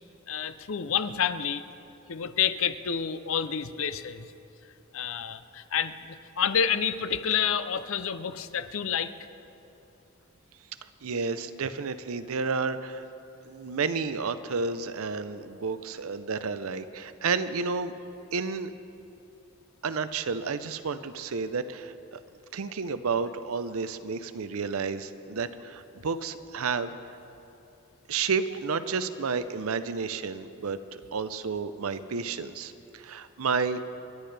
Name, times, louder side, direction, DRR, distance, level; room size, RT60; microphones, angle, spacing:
voice 1, 0.3-1.6 2.1-4.3 4.9-9.1, left 7 dB, 65° left, 12 dB, 0.6 m, -29 dB
voice 2, 11.0-13.0 13.5-17.9 18.3-18.7 19.8-22.2 22.5-27.0 28.1-33.8, right 5 dB, 75° right, 12 dB, 0.6 m, -31 dB
29.5 x 10.5 x 3.4 m, 2.9 s
head